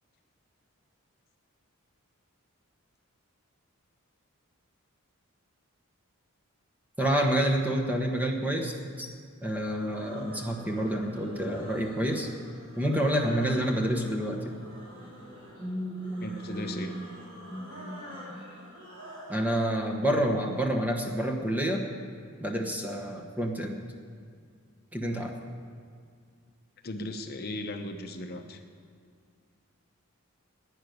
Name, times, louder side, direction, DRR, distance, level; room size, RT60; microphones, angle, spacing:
voice 1, 7.0-8.7 9.0-9.1 9.4-12.3 12.8-14.5 15.6-17.1 17.5-18.4 19.3-21.9 22.4-23.8 24.9-25.3, right 1 dB, 5° right, 2 dB, 1.3 m, -29 dB
sound 1, 9.6-19.5, equal, 55° right, 3.9 m, -47 dB
voice 2, 16.2-16.9 26.8-28.6, left 1 dB, 45° left, 5 dB, 0.9 m, -37 dB
11.5 x 9.9 x 9.5 m, 2.2 s
head